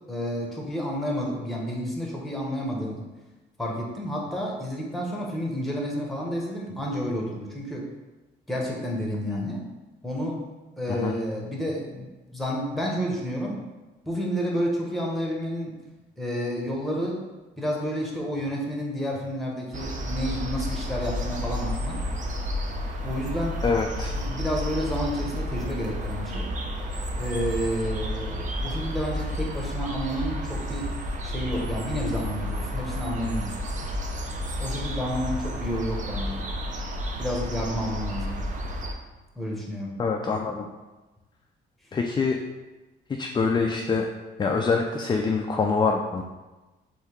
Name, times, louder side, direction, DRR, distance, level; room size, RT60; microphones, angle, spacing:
voice 1, 0.1-3.1 3.6-7.9 8.5-9.6 10.0-10.4 10.8-13.6 14.1-15.7 16.2-17.2 17.6-22.0 23.0-23.6 24.1-26.5 27.2-30.9 31.2-33.6 34.6-36.4 37.2-38.4 39.4-39.9, equal, ahead, -2 dB, 1.0 m, -30 dB
sound 1, 19.7-38.9, equal, 40° right, 0.6 m, -31 dB
voice 2, 23.6-24.1 40.0-40.7 41.9-42.4 43.2-44.1 44.4-46.2, left 4 dB, 25° left, 2 dB, 0.3 m, -25 dB
3.5 x 2.8 x 4.5 m, 1.1 s
cardioid pair, 90°, 20 cm